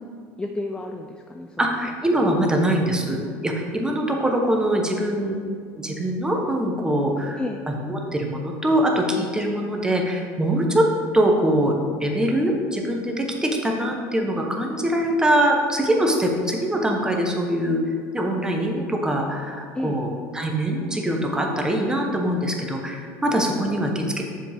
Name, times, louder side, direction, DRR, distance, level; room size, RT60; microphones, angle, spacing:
voice 1, 0.4-2.7 7.4-7.6 19.7-20.0, left 2 dB, 10° left, 4 dB, 0.4 m, -33 dB
voice 2, 1.6-3.2 3.4-5.4 5.7-7.4 7.8-10.9 11.1-11.7 12.0-24.2, right 1 dB, 10° right, 1 dB, 1.0 m, -23 dB
7.2 x 5.2 x 3.5 m, 2.1 s
supercardioid pair, 105°, 8 cm